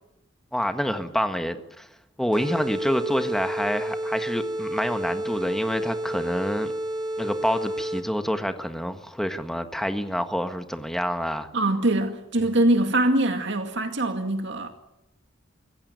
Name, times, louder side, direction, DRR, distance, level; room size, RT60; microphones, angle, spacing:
voice 1, 0.5-1.9 2.2-6.7 7.2-11.5, equal, ahead, 1.5 m, -27 dB
sound 1, 2.3-8.3, right 1 dB, 25° right, 2.0 m, -30 dB
voice 2, 11.5-14.7, right 1 dB, 60° right, 2.2 m, -23 dB
25.0 x 16.0 x 9.5 m
head